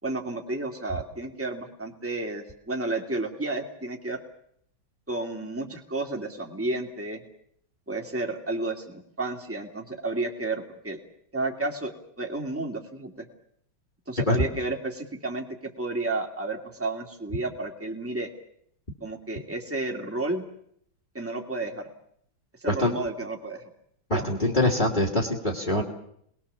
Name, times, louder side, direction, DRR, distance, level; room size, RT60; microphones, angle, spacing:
voice 1, 0.0-4.2 5.1-7.2 7.9-11.0 11.3-13.3 14.1-18.3 19.0-20.4 21.1-21.9 22.6-23.6 24.1-24.3, right 2 dB, 5° right, 1 dB, 2.7 m, -32 dB
voice 2, 24.1-25.8, left 1 dB, 25° left, -2 dB, 2.9 m, -24 dB
28.5 x 21.0 x 7.1 m, 0.71 s
omnidirectional pair, 2.1 m